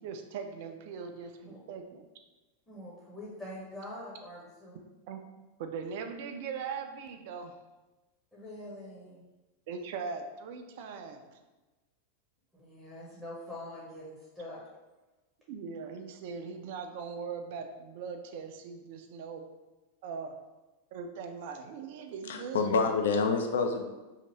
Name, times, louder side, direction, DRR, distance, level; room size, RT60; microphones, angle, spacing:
voice 1, 0.0-2.0 5.1-5.2 5.6-7.5 9.7-11.4 15.5-19.5 20.0-20.3 20.9-22.7, right 5 dB, 50° right, 6 dB, 0.3 m, -40 dB
voice 2, 2.7-4.8 8.3-9.2 12.5-14.6, left 1 dB, 10° left, -7 dB, 0.7 m, -44 dB
voice 3, 22.3-23.9, left 4 dB, 60° left, 4 dB, 0.3 m, -27 dB
2.8 x 2.5 x 2.9 m, 1.1 s
figure-of-eight pair, 90°, 0 cm